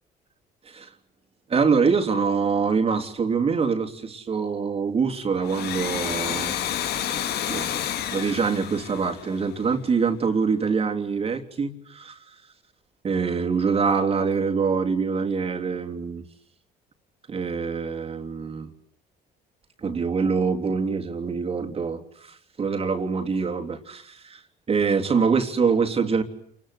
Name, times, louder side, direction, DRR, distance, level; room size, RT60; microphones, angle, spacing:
voice 1, 1.5-6.5 7.5-7.7 8.1-12.1 13.0-16.2 17.3-18.7 19.8-22.0 22.6-24.4 24.7-26.2, right 5 dB, 35° right, 3 dB, 3.3 m, -24 dB
Domestic sounds home sounds, 5.4-9.9, left 10 dB, 75° left, 2.1 m, -30 dB
29.0 x 22.0 x 8.4 m, 0.69 s
cardioid pair, 110°, 17 cm